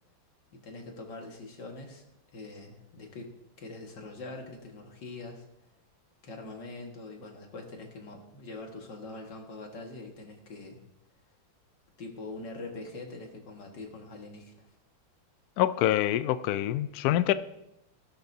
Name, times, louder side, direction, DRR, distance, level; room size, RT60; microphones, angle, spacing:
voice 1, 0.5-2.0 2.3-3.3 3.6-5.4 6.2-10.8 12.0-14.7, left 2 dB, 60° left, 1 dB, 2.4 m, -43 dB
voice 2, 15.6-17.3, left 13 dB, 80° left, 13 dB, 0.8 m, -25 dB
18.0 x 11.5 x 2.8 m, 0.86 s
omnidirectional pair, 2.1 m